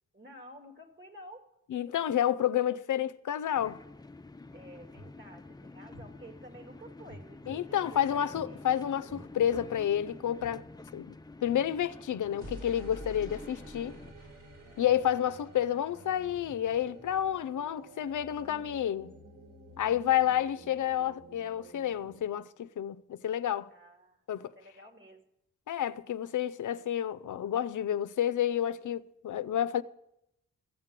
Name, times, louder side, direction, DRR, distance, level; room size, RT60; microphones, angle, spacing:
voice 1, 0.1-1.5 4.5-8.8 23.7-25.2, right 1 dB, 35° right, 2.2 m, -52 dB
voice 2, 1.7-3.8 7.5-10.7 10.9-11.2 11.4-14.0 14.8-19.1 19.8-23.7 24.3-24.5 25.7-29.8, left 10 dB, 75° left, 0.5 m, -30 dB
sound 1, 3.5-14.1, left 3 dB, 15° left, 0.5 m, -49 dB
sound 2, 4.9-5.1 5.9-6.1 7.1-7.6 8.3-8.5 9.0-9.2 9.5-9.7 10.4-10.5 12.3-22.2, right 1 dB, 70° right, 4.7 m, -50 dB
14.5 x 7.5 x 7.4 m
cardioid pair, 75°, 31 cm